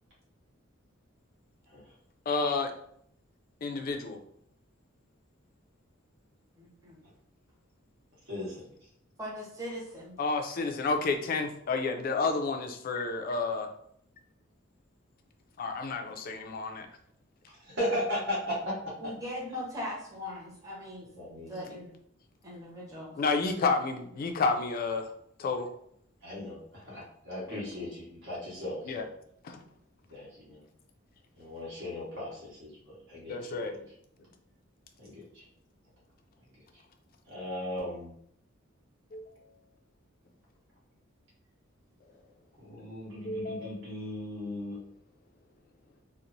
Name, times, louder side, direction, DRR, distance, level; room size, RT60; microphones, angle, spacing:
voice 1, 2.3-2.7 3.6-4.2 10.2-13.7 15.6-16.9 23.2-25.1 25.4-25.7 27.5-27.6 28.9-29.0 29.4-29.6 33.3-33.7 39.1-39.3 43.2-43.7, left 4 dB, 45° left, 5 dB, 0.3 m, -30 dB
voice 2, 6.6-7.0 9.2-10.2 19.0-21.1 21.3-21.9 22.4-23.1, left 1 dB, 15° right, -4 dB, 0.8 m, -40 dB
voice 3, 8.3-8.7 17.6-18.7 21.2-21.7 26.2-29.0 30.1-30.6 31.4-33.6 35.0-35.4 37.3-38.1 42.6-44.8, left 1 dB, 65° right, -6 dB, 1.3 m, -37 dB
2.9 x 2.0 x 2.5 m, 0.69 s
head